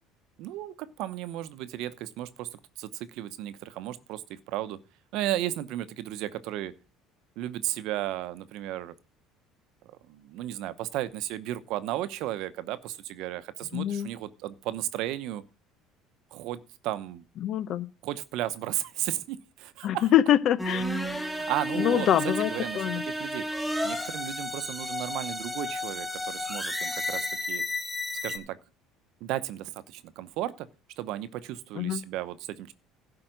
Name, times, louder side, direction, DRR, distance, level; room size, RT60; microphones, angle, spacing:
voice 1, 0.4-4.8 5.1-6.7 7.4-8.9 9.8-15.4 16.3-17.2 18.0-20.1 21.3-22.1 22.5-23.4 23.8-27.6 28.2-28.6 29.2-30.7 31.0-32.7, right 13 dB, 70° right, 0.9 m, -34 dB
voice 2, 13.7-14.1 17.4-17.9 19.8-20.8 21.8-23.0 31.7-32.0, left 11 dB, 55° left, 0.9 m, -25 dB
sound 1, 20.6-28.4, left 1 dB, ahead, 1.9 m, -32 dB
11.5 x 4.9 x 7.8 m
supercardioid pair, 90°, 0 cm